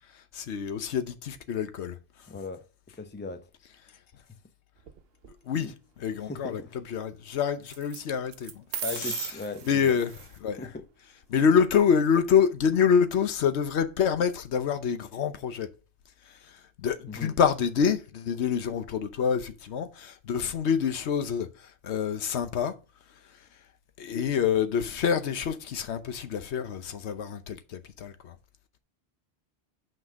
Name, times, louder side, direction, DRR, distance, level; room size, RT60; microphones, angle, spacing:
voice 1, 0.3-2.0 5.5-8.6 9.0-9.3 9.6-10.1 10.4-10.6 11.3-15.7 16.5-22.8 24.0-28.4, left 7 dB, 85° left, 1.1 m, -27 dB
voice 2, 2.3-2.6 3.0-3.5 5.5-5.8 6.2-6.7 8.8-10.0 10.6-10.8 17.1-17.3, left 4 dB, 15° left, 0.5 m, -38 dB
sound 1, 4.8-5.3 7.7-8.0 8.3-10.4, right 7 dB, 65° right, 0.9 m, -37 dB
6.0 x 5.3 x 6.1 m
omnidirectional pair, 1.1 m